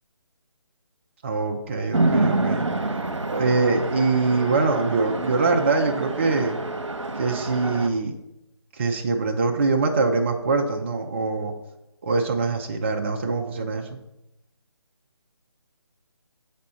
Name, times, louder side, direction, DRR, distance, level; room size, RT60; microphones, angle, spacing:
voice 1, 1.2-2.7 3.3-6.6 7.2-8.2 8.7-11.5 12.0-14.0, right 3 dB, 25° right, 3 dB, 0.4 m, -23 dB
Chatter / Traffic noise roadway noise / Train, 1.9-7.9, right 2 dB, 90° right, 0.8 m, -27 dB
7.1 x 4.2 x 4.2 m, 0.90 s
figure-of-eight pair, 155°, 15 cm